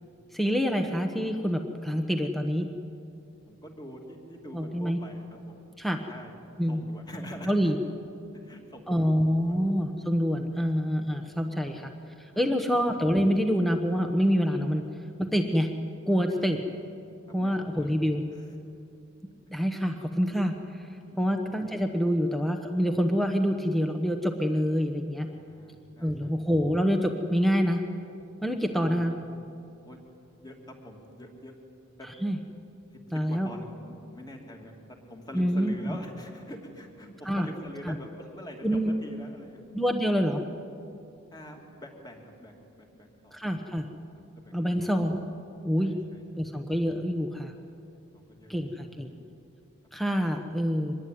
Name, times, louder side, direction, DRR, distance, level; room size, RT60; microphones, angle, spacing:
voice 1, 0.3-2.7 4.5-5.0 5.8-6.0 6.6-6.8 7.4-7.8 8.9-11.9 12.2-14.8 15.2-15.7 16.1-16.6 17.3-18.2 19.5-20.9 21.2-25.3 26.0-27.8 28.4-29.1 32.2-32.4 33.1-33.5 35.3-35.9 37.2-37.5 37.9-38.0 38.6-38.9 39.7-40.4 43.3-43.9 44.5-45.2 45.6-46.0 46.4-47.5 48.5-49.1 49.9-50.9, equal, ahead, 4 dB, 1.0 m, -26 dB
voice 2, 3.5-5.6 6.1-6.3 6.7-7.7 8.4-9.5 10.6-10.7 11.2-11.8 12.5-12.6 16.5-16.6 17.4-17.9 18.3-18.5 21.0-21.3 25.3-26.3 28.8-29.0 29.8-30.0 30.3-31.5 32.0-32.1 32.9-34.7 35.1-39.6 40.1-40.2 41.3-43.4 44.4-44.9 45.8-46.2 48.1-48.9, equal, 20° left, 2 dB, 2.8 m, -45 dB
24.5 x 21.0 x 9.4 m, 2.7 s
head